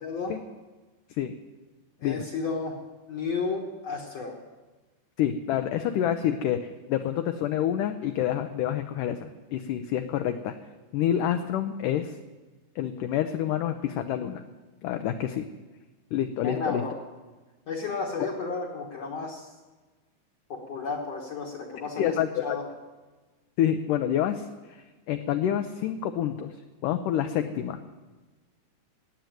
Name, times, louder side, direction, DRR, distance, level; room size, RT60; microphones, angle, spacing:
voice 1, 0.0-0.3 2.0-2.8 3.1-4.4 16.4-17.0 17.7-19.5 20.5-22.2 22.4-22.6, left 4 dB, 55° left, 0 dB, 1.9 m, -32 dB
voice 2, 5.2-10.5 10.9-12.2 12.8-14.4 14.8-15.5 16.1-16.8 22.0-22.6 23.6-26.6 26.8-27.8, left 10 dB, 80° left, 8 dB, 1.9 m, -28 dB
17.0 x 7.9 x 9.2 m, 1.2 s
omnidirectional pair, 4.4 m